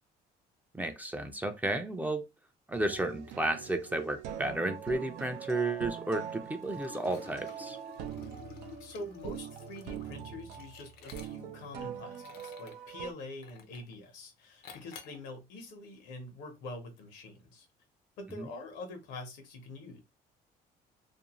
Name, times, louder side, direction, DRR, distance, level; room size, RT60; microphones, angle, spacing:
voice 1, 0.7-2.2 2.7-7.8 18.4-18.5, right 2 dB, 10° right, 0.4 m, -33 dB
sound 1, 2.7-13.1, right 9 dB, 85° right, 0.5 m, -43 dB
Liquid, 6.6-11.7 12.1-12.8 13.4-13.9 14.6-15.2, left 6 dB, 70° left, 0.5 m, -52 dB
voice 2, 8.8-17.7 18.2-20.0, left 2 dB, 85° left, 0.9 m, -45 dB
2.6 x 2.1 x 2.9 m
cardioid pair, 110°, 17 cm